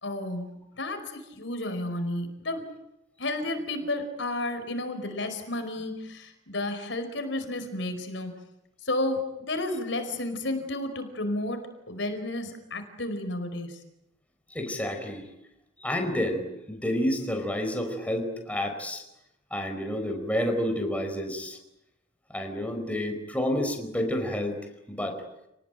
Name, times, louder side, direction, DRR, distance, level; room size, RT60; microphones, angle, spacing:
voice 1, 0.0-0.5 0.8-2.6 3.2-8.4 8.8-13.8, left 1 dB, 75° left, 8 dB, 4.9 m, -32 dB
voice 2, 14.5-15.3 15.8-19.0 19.5-21.6 22.3-24.6 24.9-25.2, left 1 dB, 10° left, 4 dB, 4.7 m, -29 dB
29.5 x 19.5 x 9.2 m, 0.86 s
head